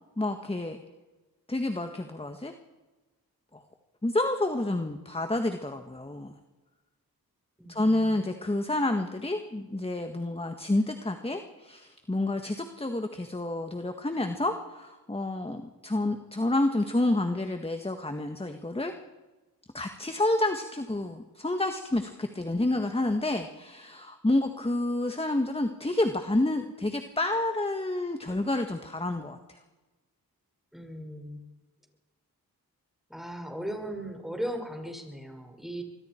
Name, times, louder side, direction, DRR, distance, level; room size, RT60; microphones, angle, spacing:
voice 1, 0.2-0.8 1.5-2.5 3.5-3.6 4.0-6.4 7.7-18.9 19.7-29.6, left 2 dB, 15° left, 6 dB, 1.7 m, -29 dB
voice 2, 7.6-8.3 30.7-31.4 33.1-35.8, equal, ahead, 3 dB, 5.6 m, -37 dB
25.5 x 22.5 x 4.5 m, 1.2 s
cardioid pair, 50°, 36 cm